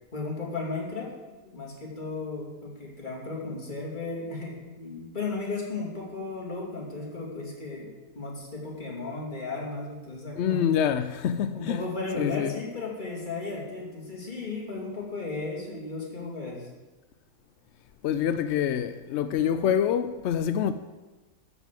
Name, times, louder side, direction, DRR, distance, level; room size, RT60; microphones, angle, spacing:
voice 1, 0.1-1.1 1.4-7.9 8.1-10.6 11.5-16.7, left 3 dB, 30° left, 2.8 m, -35 dB
voice 2, 10.4-11.8 12.1-12.5 18.0-20.7, left 9 dB, 75° left, 0.6 m, -26 dB
13.0 x 5.5 x 7.5 m
omnidirectional pair, 1.7 m